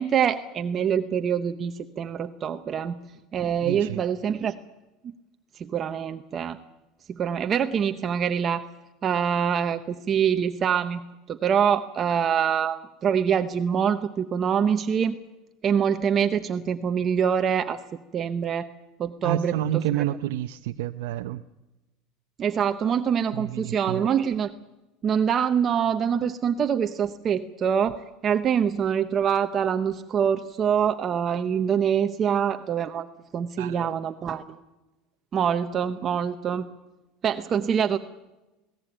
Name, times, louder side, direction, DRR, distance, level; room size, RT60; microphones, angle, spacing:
voice 1, 0.0-3.0 3.3-4.6 5.0-5.1 5.6-6.6 7.1-8.7 9.0-11.0 11.3-15.2 15.6-17.8 18.1-18.7 19.0-19.8 22.4-24.5 25.0-33.1 33.3-34.6 35.3-36.6 37.2-38.0, right 8 dB, 30° right, 8 dB, 0.8 m, -25 dB
voice 2, 3.6-4.0 19.2-21.4 23.3-24.1 33.6-33.9, right 12 dB, 85° right, 6 dB, 0.7 m, -29 dB
21.0 x 17.5 x 9.0 m, 1.1 s
cardioid pair, 155°, 0 cm